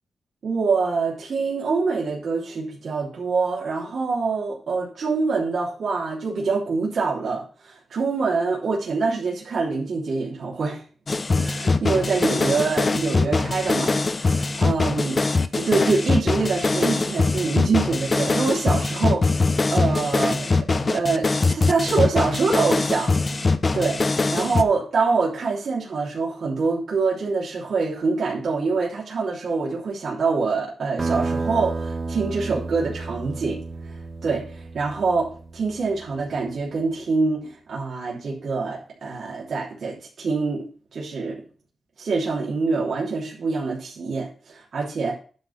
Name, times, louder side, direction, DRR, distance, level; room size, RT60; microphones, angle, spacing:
voice 1, 0.4-10.8 11.4-15.2 15.6-19.3 19.7-20.5 20.9-23.1 23.7-33.9 34.2-40.7 40.9-41.4 42.0-45.2, right 4 dB, 65° right, -4 dB, 3.1 m, -25 dB
sound 1, 11.1-24.6, left 3 dB, 35° left, 0.8 m, -22 dB
sound 2, 31.0-36.1, right 3 dB, 35° right, 0.8 m, -31 dB
10.5 x 4.0 x 7.1 m, 0.39 s
wide cardioid pair, 105°, 0 cm